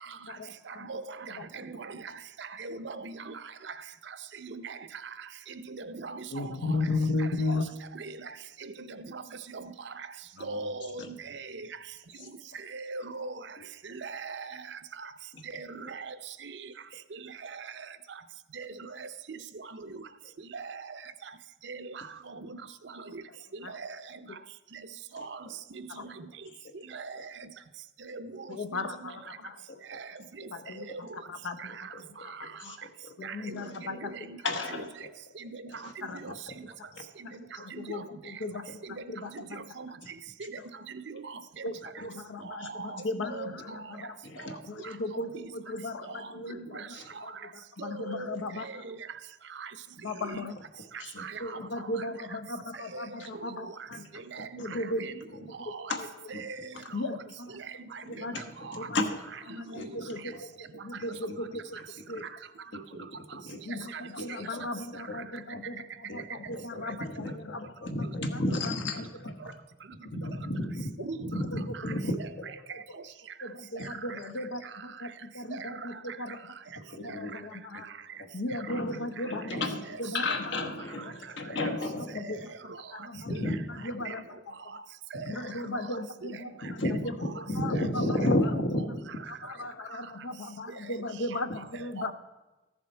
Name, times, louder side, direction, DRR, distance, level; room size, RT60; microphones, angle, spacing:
voice 1, 0.3-0.9 1.4-1.5 6.3-7.8 23.6-23.8 25.9-26.0 28.5-29.6 30.5-31.9 32.2-32.7 33.2-34.3 36.0-36.4 36.8-36.9 37.2-39.8 40.6-40.7 41.6-48.8 50.0-50.6 51.4-54.0 54.6-55.2 55.6-56.1 56.9-57.6 58.1-58.4 58.8-58.9 59.5-61.8 62.1-62.3 63.6-68.7 69.2-69.3 70.2-70.3 71.5-71.9 72.7-73.0 73.4-76.4 76.8-77.9 78.3-79.6 80.0-80.4 80.9-81.0 82.0-83.3 83.7-84.8 85.3-88.4 89.4-92.1, left 2 dB, 85° left, 0.7 m, -37 dB
voice 2, 1.5-1.9 2.4-3.4 4.5-4.8 5.7-6.4 8.0-8.1 8.9-9.2 9.5-9.6 10.4-11.7 12.7-13.3 14.0-14.5 15.5-16.1 16.4-16.5 18.6-18.7 19.0-19.4 20.5-20.8 21.6-21.8 22.3-22.6 23.7-23.9 25.1-25.4 26.0-26.1 26.9-27.2 28.1-28.4 29.9-30.0 33.2-33.6 34.0-34.4 34.7-34.8 35.4-35.6 36.1-36.3 37.7-38.0 38.9-39.0 39.3-39.4 39.8-39.9 41.3-41.4 42.6-42.9 43.3-43.5 46.5-46.8 47.8-48.7 49.6-49.7 50.2-50.4 51.2-51.3 52.9-53.0 53.4-53.7 54.3-54.5 55.0-55.1 55.7-55.8 56.4-56.7 57.8-57.9 58.7-58.8 59.5-60.0 63.9-64.0 71.0-71.3 77.1-77.2 80.6-80.7 83.3-83.5 84.1-84.2 85.1-85.3 86.8-86.9 87.7-87.9 88.5-88.9 91.3-91.4 92.0-92.1, right 4 dB, 60° right, 0.5 m, -40 dB
voice 3, 10.3-10.7 11.0-11.1 12.2-12.3 15.8-15.9 25.2-25.5 26.6-26.7 27.2-27.3 29.7-30.0 30.4-30.5 30.9-31.0 32.4-33.1 33.6-33.8 34.4-35.1 35.7-35.9 36.5-36.6 36.9-37.0 42.0-42.1 42.4-42.7 44.2-44.6 46.9-47.1 51.0-51.2 53.2-53.3 53.9-54.8 55.9-56.1 56.3-56.4 56.7-56.8 58.3-58.4 58.7-59.1 59.7-60.1 60.9-61.0 61.3-61.4 62.7-63.6 64.6-64.7 65.1-65.2 65.5-65.6 66.1-69.5 70.0-70.9 71.2-72.5 73.8-73.9 76.8-77.4 78.2-78.3 78.7-82.2 83.2-83.6 85.1-85.2 86.6-89.1, left 1 dB, 65° left, 1.1 m, -34 dB
14.0 x 7.1 x 4.4 m
head